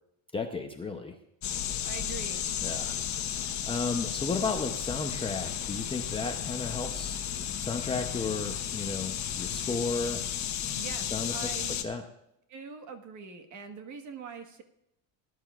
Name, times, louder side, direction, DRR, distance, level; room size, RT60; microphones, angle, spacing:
voice 1, 0.3-1.2 2.6-3.0 3.3-10.2 11.1-11.5 11.8-12.0, left 4 dB, 10° left, 3 dB, 0.6 m, -34 dB
sound 1, 1.4-11.8, left 9 dB, 40° left, 1.1 m, -33 dB
voice 2, 1.8-2.4 10.7-11.8 12.5-14.6, right 5 dB, 40° right, 7 dB, 1.4 m, -43 dB
18.5 x 11.0 x 2.4 m, 0.81 s
cardioid pair, 150°, 45 cm